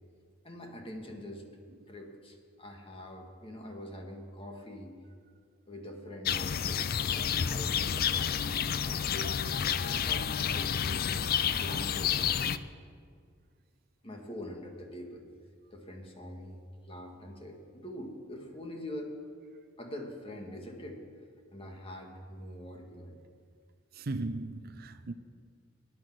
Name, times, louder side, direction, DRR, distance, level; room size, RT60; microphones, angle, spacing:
voice 1, 0.4-1.4 1.9-4.9 5.7-9.6 9.9-11.3 11.6-12.3 14.0-15.3 15.7-16.6 16.9-19.1 19.8-21.0 21.5-23.2, left 1 dB, 30° left, 1.8 m, -44 dB
sound 1, 6.2-12.6, left 8 dB, 50° left, 0.4 m, -30 dB
voice 2, 23.9-25.1, right 2 dB, 50° right, 0.6 m, -36 dB
18.0 x 9.7 x 6.1 m
head